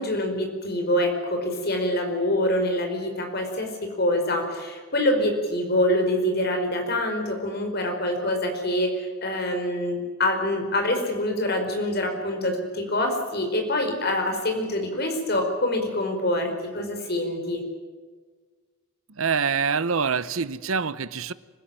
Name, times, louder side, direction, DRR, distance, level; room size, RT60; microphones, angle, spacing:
voice 1, 0.0-17.6, left 1 dB, 50° left, 4 dB, 4.9 m, -25 dB
voice 2, 19.2-21.3, right 5 dB, 80° right, 16 dB, 0.9 m, -25 dB
25.0 x 16.0 x 9.0 m, 1.5 s
head